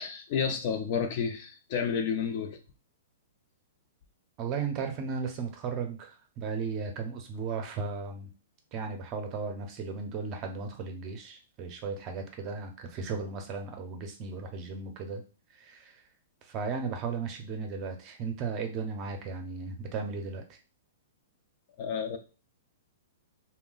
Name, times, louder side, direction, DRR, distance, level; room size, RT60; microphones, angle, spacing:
voice 1, 0.0-2.6 21.8-22.2, left 6 dB, 45° left, 5 dB, 0.6 m, -31 dB
voice 2, 4.4-8.3 8.7-15.2 15.6-16.0 16.4-20.4, right 5 dB, 35° right, 4 dB, 0.7 m, -35 dB
2.2 x 2.1 x 3.8 m, 0.34 s
hypercardioid pair, 140°, 0 cm